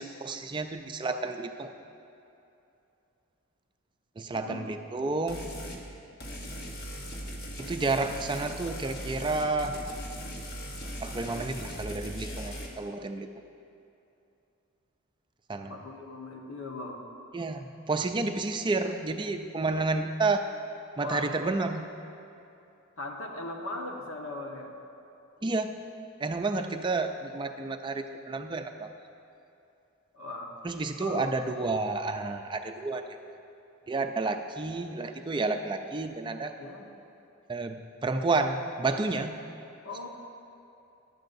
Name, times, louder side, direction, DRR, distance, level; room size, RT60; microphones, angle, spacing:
voice 1, 0.0-1.7 4.2-5.5 7.6-9.7 11.0-13.3 15.5-15.7 17.3-20.5 21.0-21.9 25.4-25.7 26.2-28.9 30.6-33.3 33.9-36.5 37.5-39.4, right 3 dB, 20° right, 6 dB, 0.4 m, -30 dB
voice 2, 4.3-4.6 15.7-17.0 21.0-21.3 23.0-24.7 30.1-30.5 31.0-31.2 36.6-36.9 39.8-40.1, left 2 dB, 70° left, 1 dB, 1.2 m, -39 dB
sound 1, 5.3-5.8 6.2-12.7, equal, 45° left, 1.2 m, -39 dB
14.5 x 11.5 x 2.6 m, 2.8 s
head